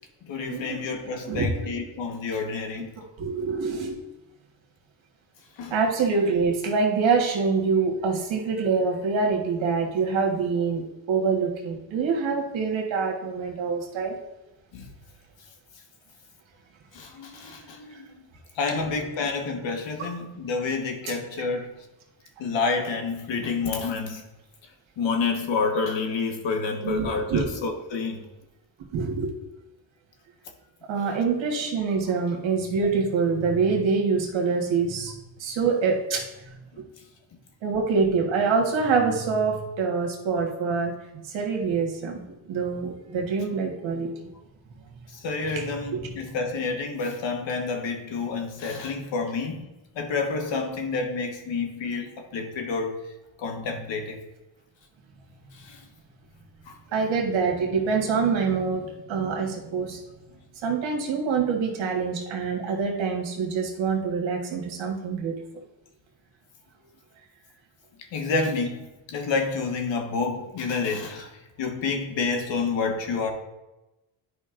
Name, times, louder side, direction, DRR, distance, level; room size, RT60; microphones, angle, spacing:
voice 1, 0.2-2.9 5.6-5.7 14.7-14.9 16.9-18.0 18.5-21.7 22.4-24.2 25.0-28.3 45.1-49.7 49.9-53.0 53.4-54.2 55.5-55.8 56.7-56.8 68.0-73.3, left 4 dB, 80° left, 3 dB, 1.4 m, -29 dB
voice 2, 3.2-4.0 5.7-14.2 26.8-27.5 28.9-29.3 30.9-35.1 35.4-36.5 37.6-44.3 45.5-45.6 45.9-46.0 56.9-60.0 60.6-65.4, right 5 dB, 90° right, 1 dB, 1.5 m, -25 dB
11.0 x 5.2 x 2.5 m, 0.98 s
cardioid pair, 90°, 44 cm